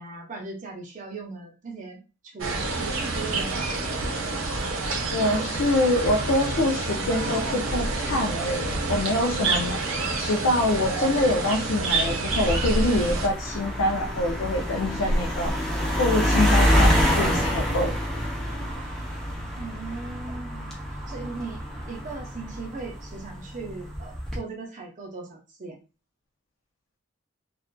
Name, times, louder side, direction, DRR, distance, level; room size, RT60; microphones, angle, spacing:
voice 1, 0.0-3.7 19.6-20.7 21.1-25.8, right 3 dB, 40° right, 1 dB, 0.6 m, -38 dB
sound 1, 2.4-13.3, right 3 dB, 80° right, 0.6 m, -28 dB
voice 2, 5.1-18.0, left 1 dB, 75° left, 2 dB, 0.4 m, -25 dB
sound 2, 12.4-23.2 23.9-24.4, equal, 5° left, 0.5 m, -26 dB
2.4 x 2.3 x 2.2 m, 0.32 s
head